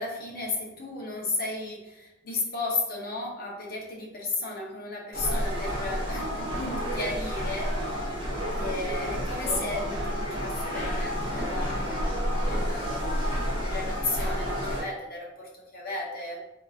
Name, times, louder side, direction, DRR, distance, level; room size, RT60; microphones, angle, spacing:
voice 1, 0.0-7.8 8.5-16.4, left 2 dB, 50° left, -3 dB, 0.9 m, -34 dB
sound 1, 5.1-14.8, equal, 25° right, 0.9 m, -30 dB
3.5 x 2.8 x 2.4 m, 0.98 s
head